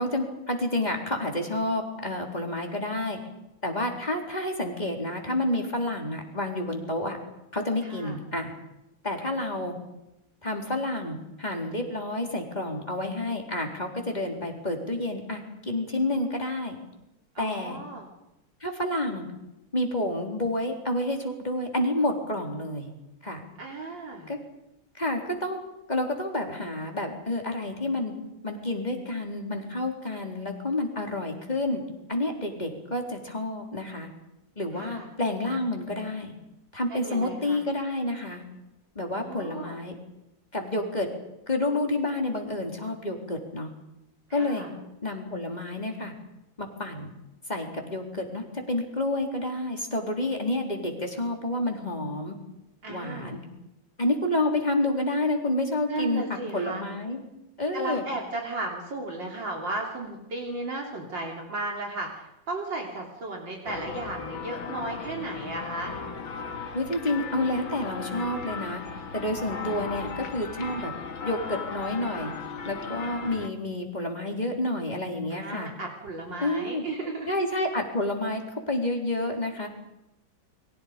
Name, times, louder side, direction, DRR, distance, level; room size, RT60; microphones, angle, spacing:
voice 1, 0.0-3.2 3.6-7.2 7.5-8.5 9.0-9.8 10.4-16.8 17.4-17.8 18.6-19.3 19.7-22.9 23.2-23.4 24.3-24.4 24.9-25.6 25.9-28.1 28.4-31.8 32.1-34.1 34.6-36.3 36.7-38.4 39.0-39.9 40.5-41.1 41.5-43.7 44.3-44.7 45.0-46.1 46.6-47.1 47.5-52.4 52.9-53.4 54.0-57.2 57.6-58.0 66.7-68.8 69.1-70.9 71.2-72.3 72.6-75.7 76.4-76.8 77.3-78.4 78.7-79.7, left 1 dB, 20° left, 1 dB, 4.0 m, -29 dB
voice 2, 7.8-8.2 17.4-18.1 23.6-24.3 34.7-35.1 36.9-37.6 39.1-39.8 44.3-44.7 52.8-53.4 55.9-56.8 57.7-66.0 75.3-77.3, right 2 dB, 65° right, 0 dB, 3.8 m, -35 dB
sound 1, 63.7-73.5, left 5 dB, 90° left, 2.6 m, -37 dB
30.0 x 24.0 x 5.2 m, 0.90 s
omnidirectional pair, 2.2 m